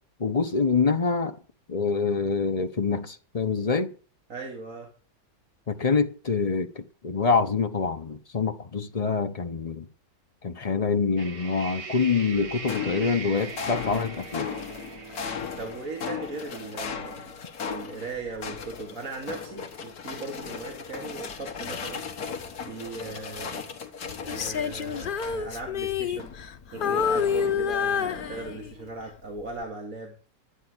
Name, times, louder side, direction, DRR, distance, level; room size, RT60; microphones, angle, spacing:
voice 1, 0.2-1.4 1.7-3.9 5.7-9.9 10.4-14.5, left 5 dB, 30° left, 0.7 m, -26 dB
voice 2, 4.3-4.9 15.6-17.3 17.6-22.0 22.7-23.6 24.2-26.3 26.7-30.1, right 3 dB, 50° right, 2.1 m, -38 dB
sound 1, 11.2-16.9, right 5 dB, 80° right, 2.4 m, -41 dB
sound 2, 12.3-25.7 26.1-28.8, left 6 dB, 60° left, 1.7 m, -37 dB
Female singing, 24.3-26.6 26.8-28.9 29.4-29.6, left 7 dB, 90° left, 0.4 m, -28 dB
11.5 x 8.3 x 6.2 m
omnidirectional pair, 1.9 m